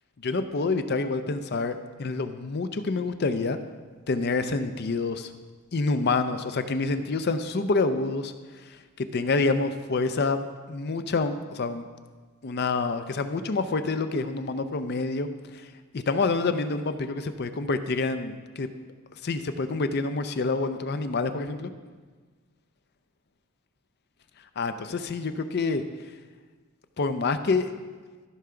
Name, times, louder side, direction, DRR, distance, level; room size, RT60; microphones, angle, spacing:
voice 1, 0.2-3.6 4.1-5.3 5.7-10.4 10.7-11.9 12.4-18.7 19.2-21.7 24.6-25.8 27.0-27.7, left 3 dB, 50° left, 9 dB, 0.5 m, -27 dB
14.0 x 5.8 x 3.8 m, 1.4 s
head